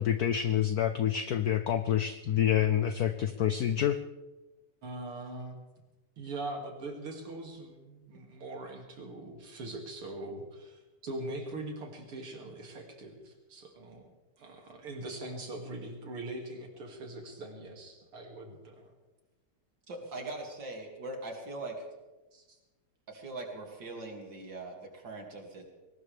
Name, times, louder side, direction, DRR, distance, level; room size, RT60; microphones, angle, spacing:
voice 1, 0.0-4.0, left 10 dB, 85° left, 10 dB, 0.8 m, -27 dB
voice 2, 4.8-5.6 6.2-14.1 14.4-18.9 22.3-22.6, right 2 dB, 80° right, 1 dB, 3.4 m, -42 dB
voice 3, 19.9-21.8 23.1-25.6, right 2 dB, 55° right, 1 dB, 3.2 m, -41 dB
21.0 x 19.0 x 3.4 m, 1.1 s
omnidirectional pair, 2.4 m